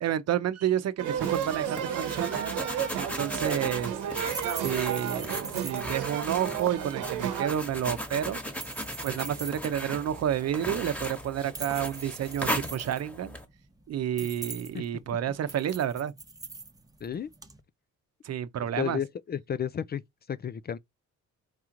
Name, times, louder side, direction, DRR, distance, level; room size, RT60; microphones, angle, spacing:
voice 1, 0.0-2.5 3.0-4.0 4.6-8.4 9.0-13.4 13.9-16.1 18.2-19.0, right 10 dB, 55° right, 0.7 m, -30 dB
sound 1, 1.0-13.5, equal, 5° left, 1.4 m, -37 dB
sound 2, 1.0-7.5, right 9 dB, 85° right, 1.0 m, -32 dB
sound 3, 2.5-17.6, right 3 dB, 10° right, 0.9 m, -44 dB
voice 2, 18.8-20.0 20.3-20.8, left 8 dB, 35° left, 0.4 m, -32 dB
4.7 x 2.9 x 3.8 m
cardioid pair, 90°, 30 cm